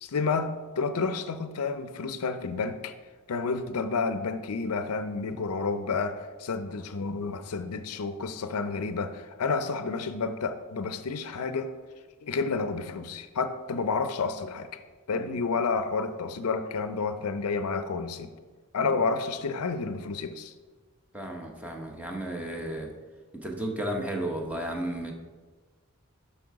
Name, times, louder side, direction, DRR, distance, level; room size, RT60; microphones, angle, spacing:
voice 1, 0.0-2.9 3.3-11.7 12.2-14.7 15.1-18.3 18.7-20.5, left 4 dB, 75° left, 10 dB, 0.5 m, -30 dB
voice 2, 21.1-22.9 23.3-25.1, right 1 dB, 5° right, 1 dB, 0.9 m, -33 dB
7.8 x 5.8 x 4.7 m, 1.4 s
head